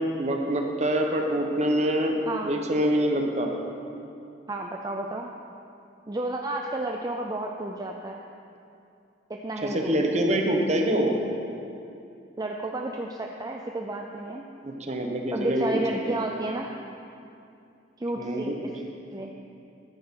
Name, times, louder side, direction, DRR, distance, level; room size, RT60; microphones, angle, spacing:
voice 1, 0.0-2.1 2.4-3.5 9.6-11.2 14.6-15.8 16.1-16.2 18.2-18.7, right 1 dB, 40° right, 2 dB, 1.1 m, -25 dB
voice 2, 4.5-5.3 6.1-8.2 9.3-10.1 12.4-14.4 15.3-16.7 18.0-18.7 19.1-19.3, right 2 dB, 20° right, 1 dB, 0.5 m, -32 dB
13.0 x 10.0 x 3.8 m, 2.6 s
head